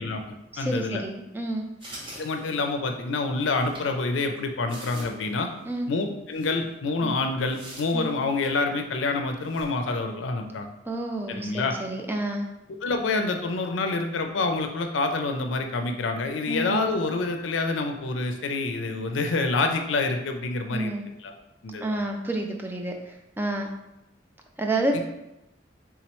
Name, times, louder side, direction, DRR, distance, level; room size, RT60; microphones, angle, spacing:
voice 1, 0.0-1.0 2.2-5.5 5.9-10.7 11.3-11.8 12.8-20.9 21.2-21.3 21.6-22.0 24.9-25.0, left 3 dB, 90° left, 5 dB, 0.4 m, -27 dB
voice 2, 0.5-1.7 5.7-5.9 7.0-7.1 7.9-8.1 10.9-12.5 16.5-16.8 20.7-21.0 21.8-23.7 24.6-25.0, right 2 dB, 10° right, 2 dB, 0.3 m, -29 dB
sound 1, 1.8-2.9 3.5-3.8 4.4-4.5 4.7-5.3 5.6-5.7 6.3-6.6 7.5-8.6 9.4-9.7, right 1 dB, 30° right, 0.8 m, -44 dB
3.6 x 3.0 x 3.0 m, 0.91 s
head